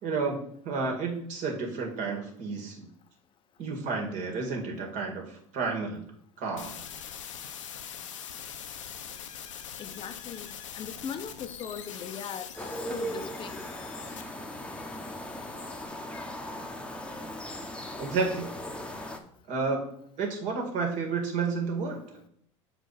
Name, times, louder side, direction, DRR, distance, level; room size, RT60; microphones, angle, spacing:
voice 1, 0.0-2.9 3.6-6.0 6.4-6.7 18.0-18.5 18.9-19.1 19.5-22.2, right 4 dB, 55° right, 2.0 m, -31 dB
sound 1, 6.6-15.9, left 8 dB, 85° left, 0.7 m, -43 dB
voice 2, 9.8-10.5 10.7-12.5 12.9-13.6, left 7 dB, 35° left, 0.6 m, -39 dB
sound 2, 12.6-19.2, equal, 5° left, 0.9 m, -38 dB
6.7 x 4.6 x 4.1 m
hypercardioid pair, 85°, 16 cm